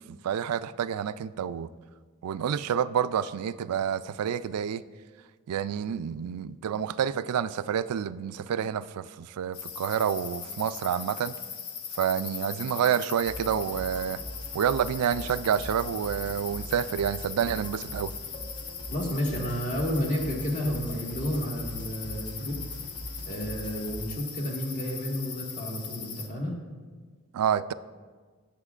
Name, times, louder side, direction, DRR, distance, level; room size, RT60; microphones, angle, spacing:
voice 1, 0.0-1.7 2.2-4.8 5.5-11.3 12.0-14.2 14.5-18.1 27.3-27.7, right 8 dB, 85° right, 0.3 m, -28 dB
sound 1, 9.5-26.3, left 6 dB, 85° left, 1.0 m, -40 dB
sound 2, 13.2-24.1, equal, 20° left, 1.2 m, -42 dB
voice 2, 18.9-22.6 23.2-26.5, equal, 35° left, 1.7 m, -31 dB
18.0 x 7.2 x 2.5 m
head